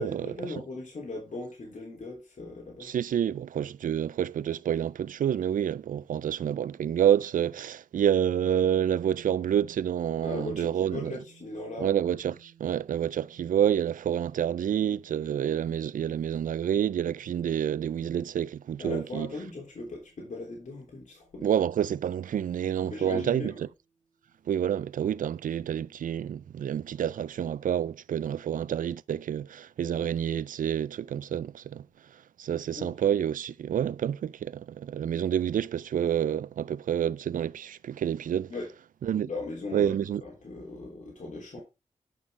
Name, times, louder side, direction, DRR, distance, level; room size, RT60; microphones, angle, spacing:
voice 1, 0.0-2.9 10.2-12.2 18.8-21.5 22.8-23.6 32.7-33.1 38.5-38.7 39.2-41.6, left 2 dB, 65° left, 3.6 m, -38 dB
voice 2, 2.8-11.2 11.8-19.3 21.4-23.5 24.5-31.9 32.4-38.5 39.0-39.3 39.7-40.2, right 9 dB, 80° right, 0.4 m, -28 dB
sound 1, 23.8-24.0, right 9 dB, 40° right, 2.5 m, -60 dB
11.0 x 6.1 x 3.7 m
wide cardioid pair, 75°, 14 cm